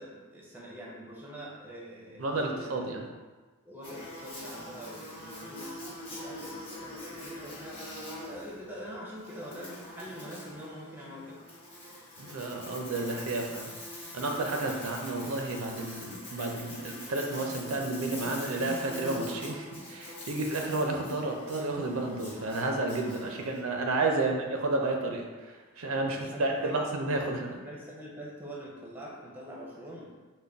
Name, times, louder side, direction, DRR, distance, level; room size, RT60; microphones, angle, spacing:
voice 1, 0.0-2.9 3.7-7.8 8.2-11.5 14.5-14.9 23.4-23.5 24.1-24.4 26.1-26.8 27.4-30.1, equal, 10° right, -4 dB, 0.5 m, -44 dB
voice 2, 2.2-3.0 12.2-13.7 14.1-27.6, right 2 dB, 70° right, 2 dB, 0.4 m, -31 dB
Buzz, 3.8-23.6, left 1 dB, 25° left, 0.8 m, -44 dB
3.9 x 2.1 x 3.4 m, 1.3 s
head